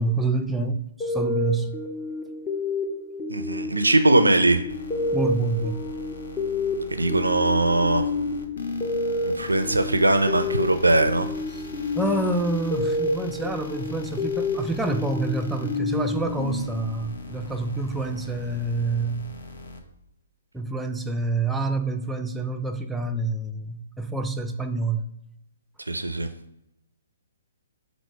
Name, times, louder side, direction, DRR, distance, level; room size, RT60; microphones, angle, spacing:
voice 1, 0.0-1.8 5.1-5.8 11.5-11.6 12.0-19.2 20.5-25.1, right 2 dB, 5° right, 4 dB, 0.4 m, -27 dB
sound 1, 1.0-17.3, left 2 dB, 25° left, 0.7 m, -29 dB
voice 2, 3.3-4.6 6.9-8.1 9.2-11.3 25.9-26.3, right 2 dB, 85° right, 8 dB, 0.4 m, -21 dB
sound 2, 4.7-19.8, left 2 dB, 65° left, 0.6 m, -42 dB
5.0 x 2.0 x 4.5 m, 0.85 s
figure-of-eight pair, 125°, 0 cm